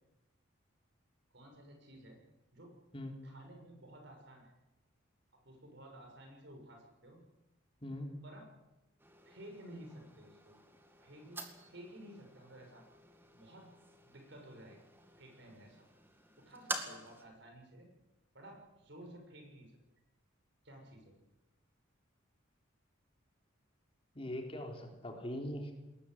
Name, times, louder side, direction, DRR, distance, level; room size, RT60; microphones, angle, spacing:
voice 1, 1.3-2.2 2.5-2.7 3.2-4.5 5.3-7.2 8.2-8.5 9.2-10.6 11.0-12.9 13.3-13.7 14.0-14.8 15.1-15.9 16.4-17.9 18.3-19.7 20.6-21.2, right 1 dB, 60° right, 3 dB, 6.5 m, -54 dB
sound 1, 9.0-17.2, right 2 dB, 10° right, 2.1 m, -48 dB
voice 2, 24.2-25.7, left 1 dB, 30° left, 2 dB, 3.6 m, -41 dB
21.0 x 18.5 x 8.0 m, 1.0 s
head